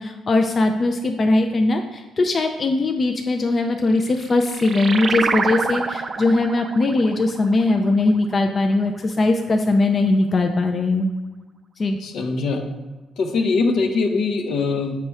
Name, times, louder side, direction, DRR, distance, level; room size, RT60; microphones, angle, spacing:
voice 1, 0.0-11.1 11.8-12.0, left 2 dB, 40° left, 4 dB, 0.4 m, -20 dB
sound 1, 3.8-8.9, right 4 dB, 45° right, 0.4 m, -28 dB
voice 2, 12.0-12.6 13.2-15.0, left 4 dB, 70° left, 4 dB, 0.8 m, -22 dB
6.7 x 3.1 x 4.8 m, 1.1 s
cardioid pair, 90°, 0 cm